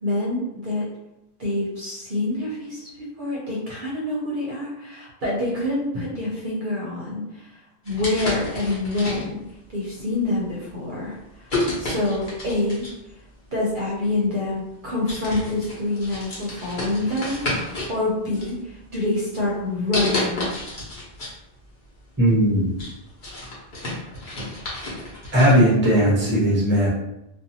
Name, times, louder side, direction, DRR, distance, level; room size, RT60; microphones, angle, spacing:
voice 1, 0.0-0.9 1.4-7.6 7.8-9.4 9.7-12.9 13.5-20.5, left 2 dB, 55° right, -5 dB, 0.8 m, -26 dB
sound 1, 7.8-9.5 10.2-10.5 11.5-13.1 14.1-14.2 14.7-14.8 15.1-17.9 18.3-19.0 19.9-21.4 21.7-21.8 22.3-25.6, left 1 dB, 50° left, 1.0 m, -30 dB
voice 2, 22.2-22.7 25.3-26.9, equal, 10° right, -7 dB, 0.7 m, -17 dB
2.5 x 2.3 x 2.7 m, 0.89 s
omnidirectional pair, 1.1 m